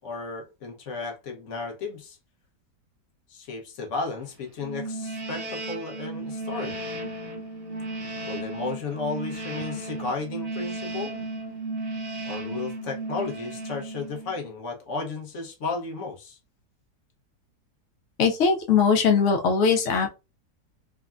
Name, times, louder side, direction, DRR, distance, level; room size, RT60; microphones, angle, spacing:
voice 1, 0.0-2.2 3.3-6.7 8.3-11.1 12.2-16.4, left 4 dB, 55° left, 1.0 m, -34 dB
sound 1, 4.6-14.5, right 2 dB, 40° right, 0.6 m, -34 dB
voice 2, 18.2-20.1, left 6 dB, 75° left, 0.7 m, -20 dB
3.5 x 2.1 x 2.4 m
omnidirectional pair, 1.8 m